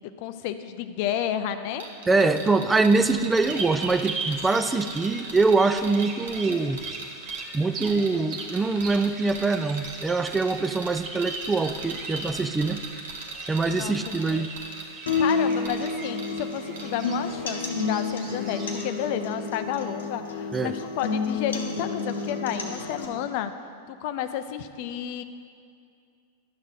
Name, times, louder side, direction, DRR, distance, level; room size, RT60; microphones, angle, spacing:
voice 1, 0.2-1.9 13.7-14.5 15.2-23.5 23.9-25.2, left 10 dB, 55° left, 10 dB, 0.4 m, -31 dB
sound 1, 1.8-16.5 16.8-17.0, right 3 dB, 75° right, 1.2 m, -39 dB
voice 2, 2.1-6.8 7.5-12.8 13.5-14.5 20.5-20.7, right 3 dB, 15° right, 10 dB, 0.4 m, -24 dB
sound 2, 3.3-18.9, right 3 dB, 35° right, 1.0 m, -40 dB
sound 3, 15.1-23.0, left 4 dB, 80° left, 0.9 m, -30 dB
11.0 x 6.4 x 3.8 m, 2.4 s
hypercardioid pair, 100°, 0 cm